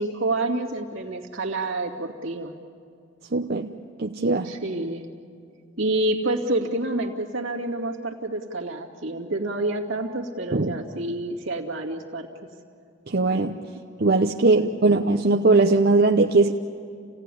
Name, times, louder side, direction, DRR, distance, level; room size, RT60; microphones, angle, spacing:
voice 1, 0.0-2.5 4.4-5.1 5.8-12.3 14.6-15.2, right 2 dB, 75° right, 1 dB, 2.4 m, -28 dB
voice 2, 3.3-3.7 4.0-4.6 10.5-10.8 13.1-13.6 14.0-16.5, right 3 dB, 50° right, 2 dB, 0.8 m, -20 dB
29.0 x 17.5 x 10.0 m, 2.4 s
head